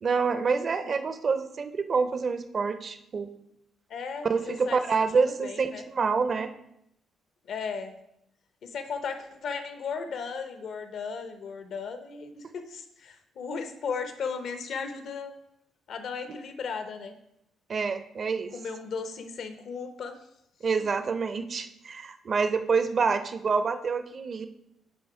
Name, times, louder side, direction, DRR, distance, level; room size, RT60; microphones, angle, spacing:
voice 1, 0.0-3.3 4.2-6.5 17.7-18.5 20.6-24.5, right 5 dB, 45° right, 9 dB, 0.6 m, -27 dB
voice 2, 3.9-4.8 5.4-5.8 7.5-7.9 8.6-15.3 15.9-17.1 18.5-20.2, left 5 dB, 65° left, 7 dB, 0.8 m, -36 dB
8.6 x 3.0 x 4.7 m, 0.78 s
cardioid pair, 90°, 0 cm